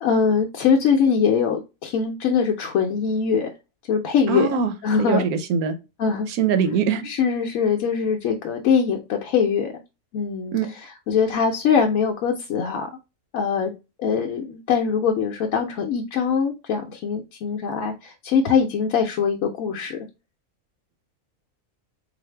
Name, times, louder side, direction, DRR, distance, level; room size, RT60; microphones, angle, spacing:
voice 1, 0.0-3.5 3.9-5.3 6.0-6.3 7.0-9.7 10.1-10.6 11.1-12.9 13.3-13.7 14.0-20.0, left 6 dB, 70° left, 2 dB, 1.0 m, -22 dB
voice 2, 4.3-4.7 5.0-5.7 6.3-7.1 10.5-10.7, right 6 dB, 85° right, 9 dB, 1.2 m, -22 dB
4.1 x 2.5 x 3.2 m, 0.27 s
omnidirectional pair, 1.5 m